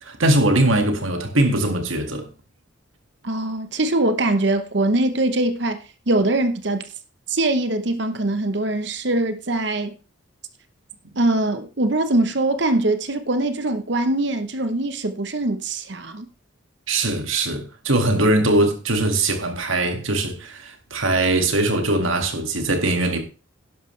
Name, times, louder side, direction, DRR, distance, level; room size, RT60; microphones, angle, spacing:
voice 1, 0.0-2.3 16.9-23.2, right 2 dB, 75° right, 2.0 m, -21 dB
voice 2, 3.2-5.8 6.1-6.9 7.3-10.0 11.2-16.3, right 2 dB, 55° right, 0.9 m, -22 dB
11.5 x 11.0 x 3.3 m
head